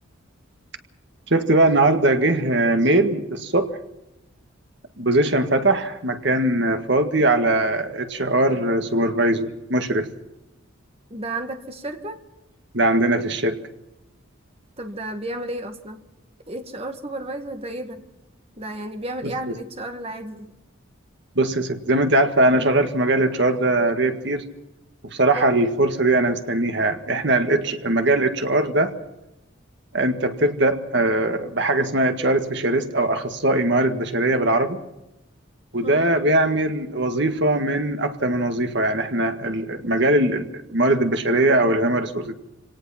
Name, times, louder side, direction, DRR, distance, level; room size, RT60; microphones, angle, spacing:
voice 1, 1.3-3.7 5.0-10.1 12.7-13.6 19.2-19.3 21.4-24.4 25.0-28.9 29.9-34.8 35.7-42.3, right 2 dB, 55° right, 6 dB, 1.8 m, -21 dB
voice 2, 11.1-12.2 14.8-16.0 16.5-18.0 18.6-20.5 25.3-25.6 35.8-36.1, right 1 dB, 30° right, 5 dB, 2.1 m, -32 dB
26.5 x 18.5 x 5.9 m, 0.89 s
head